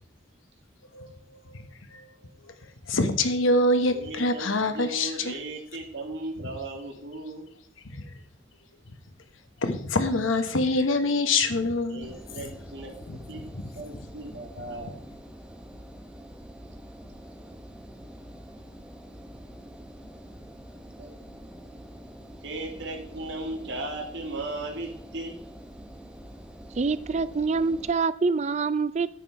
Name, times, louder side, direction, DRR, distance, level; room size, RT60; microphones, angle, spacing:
voice 1, 2.9-5.4 7.8-8.0 9.6-12.1 13.1-13.2, left 2 dB, 90° left, 8 dB, 1.1 m, -25 dB
voice 2, 3.9-7.5 11.9-13.4 13.7-15.0 21.0-21.1 22.4-25.4, right 2 dB, 60° right, 1 dB, 1.9 m, -37 dB
Engine, 12.0-27.9, equal, 5° right, 0.9 m, -46 dB
voice 3, 26.8-29.1, right 4 dB, 35° right, 16 dB, 0.4 m, -25 dB
9.9 x 7.5 x 4.6 m, 0.69 s
head